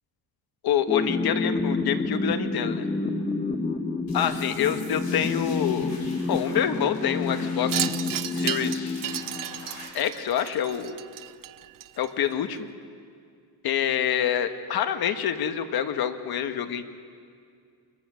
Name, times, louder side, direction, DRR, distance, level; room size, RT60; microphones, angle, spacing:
voice 1, 0.6-2.9 4.1-6.0 6.3-8.0 8.3-9.0 9.9-10.9 12.0-12.7 13.6-16.8, left 9 dB, 60° left, 8 dB, 1.4 m, -27 dB
sound 1, 0.9-9.9, left 3 dB, 15° left, 1.0 m, -29 dB
sound 2, 4.1-9.8, left 2 dB, 40° left, 6.1 m, -45 dB
Wind chime, 7.7-12.3, right 13 dB, 55° right, 0.5 m, -33 dB
26.5 x 22.0 x 6.3 m, 2.2 s
cardioid pair, 155°, 41 cm